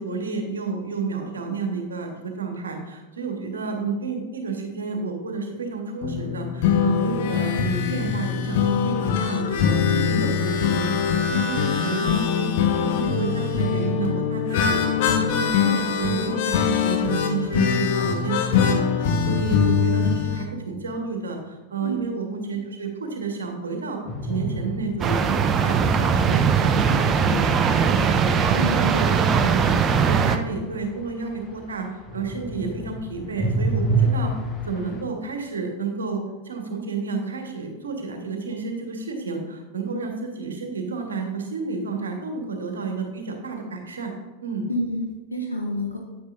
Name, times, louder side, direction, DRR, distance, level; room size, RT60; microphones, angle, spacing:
voice 1, 0.0-12.5 12.8-29.6 29.9-34.3 34.6-44.1 44.4-44.7, right 4 dB, 70° right, 3 dB, 1.5 m, -31 dB
sound 1, 6.0-20.5, left 7 dB, 50° left, 0.8 m, -23 dB
sound 2, 24.1-25.7 28.0-31.8 32.1-35.0, right 2 dB, 25° left, 1.2 m, -28 dB
sound 3, 25.0-30.4, right 6 dB, 25° right, 0.6 m, -20 dB
voice 2, 28.6-29.0 44.7-46.0, equal, 80° left, 1 dB, 0.9 m, -28 dB
9.6 x 9.1 x 2.7 m, 1.3 s
figure-of-eight pair, 90°, 0 cm